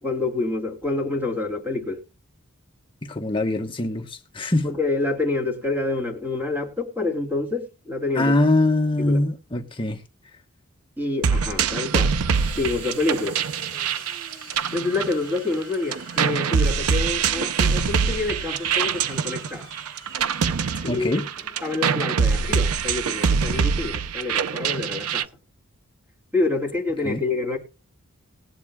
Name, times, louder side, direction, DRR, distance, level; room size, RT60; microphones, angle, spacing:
voice 1, 0.0-2.0 4.6-8.4 9.1-9.2 11.0-12.1 12.6-13.4 14.7-19.7 20.8-21.1 21.6-25.3 26.3-27.6, left 3 dB, 10° right, 2.7 m, -27 dB
voice 2, 3.0-4.8 8.1-10.0 20.9-21.3 27.0-27.2, left 2 dB, 20° left, 1.1 m, -23 dB
sound 1, 11.2-15.6 15.9-25.2, right 6 dB, 80° right, 0.5 m, -24 dB
Domestic sounds home sounds, 12.3-23.7, right 3 dB, 55° right, 3.8 m, -44 dB
19.5 x 8.5 x 2.3 m
head